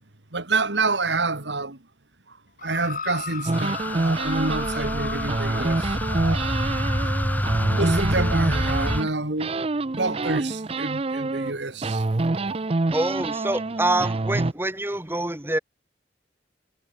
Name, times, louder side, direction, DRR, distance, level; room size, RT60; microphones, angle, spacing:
voice 1, 0.3-1.8 2.6-6.5 7.6-9.5 9.9-12.0, right 3 dB, 80° right, 2.6 m, -28 dB
sound 1, 2.6-6.2 7.1-7.2, left 5 dB, 50° left, 7.7 m, -37 dB
sound 2, 3.5-9.0, equal, 10° left, 3.4 m, -27 dB
sound 3, 3.5-9.1 9.4-11.5 11.8-14.5, right 2 dB, 35° right, 0.6 m, -27 dB
voice 2, 12.9-15.6, right 1 dB, 15° right, 3.3 m, -26 dB
head